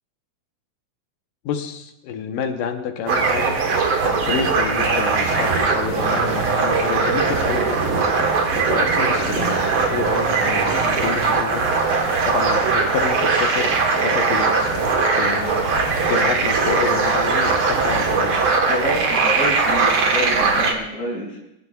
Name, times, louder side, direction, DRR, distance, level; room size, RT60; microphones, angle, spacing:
voice 1, 1.5-3.6 4.0-11.9 12.2-14.7 15.1-15.8 16.1-18.6 19.4-19.5, left 7 dB, 70° left, 5 dB, 2.3 m, -29 dB
sound 1, 3.1-20.7, right 4 dB, 65° right, 1.3 m, -20 dB
voice 2, 18.7-21.4, equal, 30° left, -6 dB, 3.5 m, -28 dB
26.0 x 11.0 x 2.3 m, 0.85 s
omnidirectional pair, 4.3 m